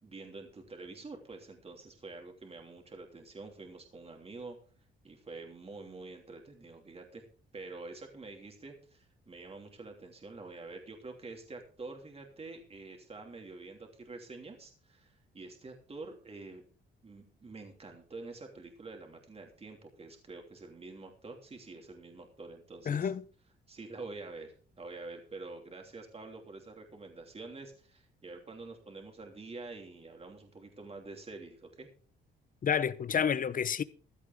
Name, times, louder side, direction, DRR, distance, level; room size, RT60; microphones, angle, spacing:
voice 1, 0.0-4.6 5.0-7.2 7.5-16.6 17.0-23.1 23.7-31.9, right 3 dB, 30° right, 3.2 m, -47 dB
voice 2, 22.9-23.2 32.6-33.8, left 7 dB, 45° left, 0.8 m, -29 dB
15.5 x 12.5 x 3.6 m
cardioid pair, 90°, 20 cm